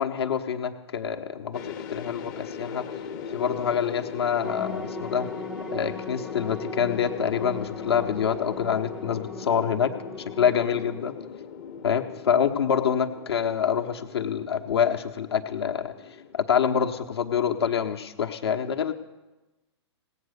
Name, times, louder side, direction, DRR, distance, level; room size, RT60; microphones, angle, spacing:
voice 1, 0.0-2.8 3.3-5.3 5.7-9.9 10.4-11.1 11.8-15.9 16.3-18.9, left 8 dB, 60° left, 6 dB, 1.1 m, -26 dB
sound 1, 1.5-17.7, left 6 dB, 40° left, 0.9 m, -39 dB
sound 2, 4.4-11.0, equal, ahead, 0.4 m, -40 dB
17.5 x 8.2 x 6.8 m, 1.1 s
figure-of-eight pair, 115°, 15 cm